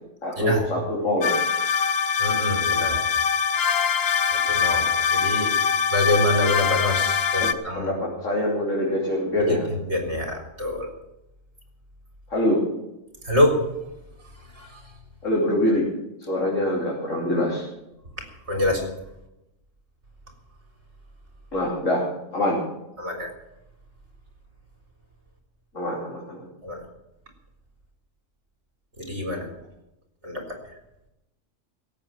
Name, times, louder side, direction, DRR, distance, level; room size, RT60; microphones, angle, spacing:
voice 1, 0.2-1.3 7.4-9.7 12.3-12.6 15.2-15.9 16.3-17.6 21.5-22.0 22.3-22.6 25.7-26.5, left 1 dB, 85° left, -4 dB, 3.7 m, -24 dB
sound 1, 1.2-7.5, left 6 dB, 55° left, 1.0 m, -23 dB
voice 2, 2.2-3.0 4.5-5.5 5.9-7.9 9.5-10.9 13.2-13.6 14.6-14.8 18.5-18.9 23.0-23.3 26.6-26.8 29.0-29.5 30.2-30.6, left 1 dB, 65° right, 2 dB, 4.0 m, -25 dB
17.0 x 8.4 x 9.0 m, 0.91 s
omnidirectional pair, 1.3 m